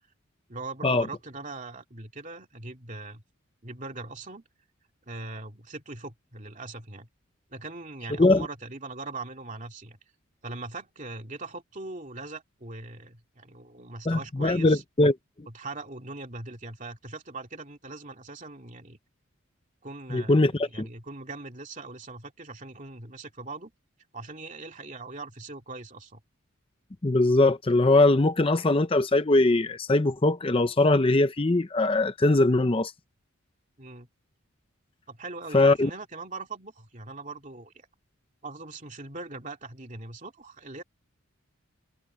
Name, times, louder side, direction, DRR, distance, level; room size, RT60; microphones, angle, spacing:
voice 1, 0.5-3.2 3.6-4.4 5.1-7.1 7.5-10.0 10.4-14.8 15.5-19.0 19.8-23.7 24.1-26.2 33.8-34.1 35.1-37.7 38.4-40.8, right 3 dB, 35° right, 2.8 m, -40 dB
voice 2, 14.1-15.2 20.1-20.9 27.0-32.9 35.5-35.9, left 2 dB, 25° left, 0.6 m, -21 dB
head